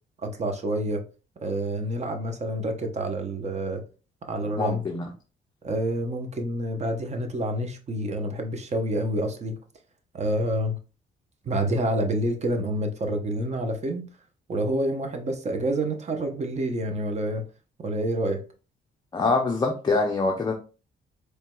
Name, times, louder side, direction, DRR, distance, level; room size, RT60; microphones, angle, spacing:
voice 1, 0.2-1.0 1.4-3.8 4.2-4.8 5.6-9.6 10.1-10.8 11.4-14.0 14.5-17.4 17.8-18.4, right 1 dB, 35° right, 0.8 m, -28 dB
voice 2, 4.6-5.0 19.1-20.5, left 3 dB, 20° left, 0.5 m, -24 dB
4.4 x 3.2 x 2.2 m
cardioid pair, 125°, 21 cm